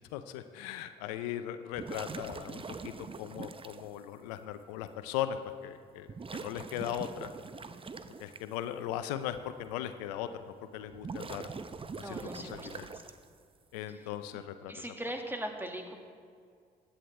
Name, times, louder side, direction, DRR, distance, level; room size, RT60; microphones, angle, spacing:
voice 1, 0.1-2.9 3.2-7.3 8.2-11.5 12.1-12.9 13.7-14.9, left 11 dB, 85° left, 11 dB, 0.5 m, -38 dB
sound 1, 1.7-3.8 4.9-5.0 6.1-8.4 10.8-13.4, right 4 dB, 25° right, 0.7 m, -43 dB
voice 2, 12.0-13.0 13.9-14.1 14.7-16.0, right 1 dB, 10° right, 3 dB, 1.8 m, -40 dB
16.0 x 10.0 x 3.3 m, 2.2 s
hypercardioid pair, 50°, 20 cm